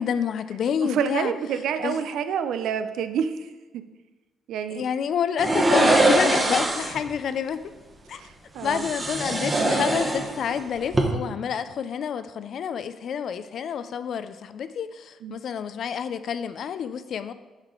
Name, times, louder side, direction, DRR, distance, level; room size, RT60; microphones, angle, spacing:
voice 1, 0.0-1.3 1.8-2.0 4.7-7.6 8.1-8.2 8.6-17.3, left 7 dB, 65° left, 12 dB, 0.4 m, -28 dB
voice 2, 0.8-3.8 4.5-4.8 8.1-8.9 15.2-15.4, right 7 dB, 80° right, 9 dB, 0.4 m, -28 dB
sound 1, 5.4-7.0 8.6-10.6 10.8-11.0, right 2 dB, 25° right, 1.1 m, -22 dB
6.5 x 4.9 x 3.8 m, 1.2 s
cardioid pair, 90°, 0 cm